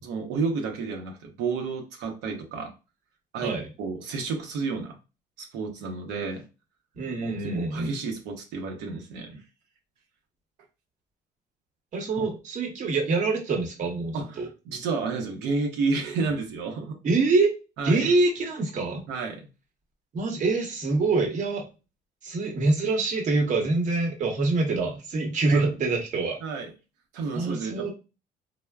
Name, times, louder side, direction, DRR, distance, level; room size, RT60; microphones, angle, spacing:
voice 1, 0.0-2.7 3.3-5.0 5.4-6.4 7.2-9.4 12.2-12.3 14.1-17.0 17.8-18.1 19.1-19.4 25.5-25.7 26.4-26.7 27.1-27.9, right 4 dB, 90° right, 2 dB, 0.7 m, -31 dB
voice 2, 7.0-7.9 11.9-14.5 17.0-17.5 17.8-19.0 20.1-21.7 22.2-26.4 27.3-27.9, right 3 dB, 45° right, 2 dB, 0.9 m, -25 dB
3.3 x 2.1 x 2.3 m, 0.30 s
cardioid pair, 110°, 17 cm